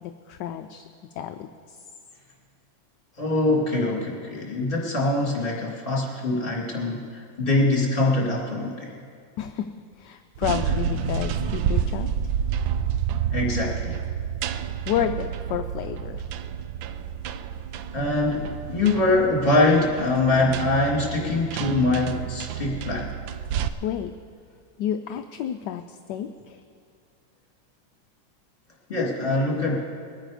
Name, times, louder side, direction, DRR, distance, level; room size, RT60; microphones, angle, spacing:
voice 1, 0.0-0.8 1.2-1.5 9.4-9.7 10.0-12.1 14.9-16.2 23.8-24.1 24.8-25.8 26.1-26.6, left 10 dB, 75° left, 7 dB, 1.1 m, -30 dB
voice 2, 3.2-8.9 13.3-14.0 17.9-23.1 28.9-29.8, left 2 dB, 30° left, -3 dB, 2.5 m, -23 dB
sound 1, 10.4-23.7, right 8 dB, 90° right, 1.3 m, -29 dB
22.0 x 9.0 x 4.9 m, 2.2 s
omnidirectional pair, 2.0 m